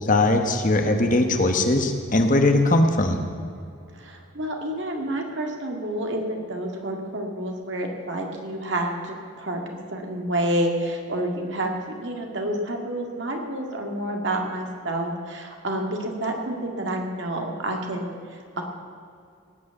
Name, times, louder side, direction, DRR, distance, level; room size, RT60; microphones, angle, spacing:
voice 1, 0.0-3.2, left 2 dB, 40° left, 5 dB, 1.1 m, -20 dB
voice 2, 3.9-9.6 9.9-11.7 12.0-18.6, right 1 dB, 55° right, 2 dB, 1.9 m, -29 dB
18.5 x 6.3 x 8.2 m, 2.4 s
head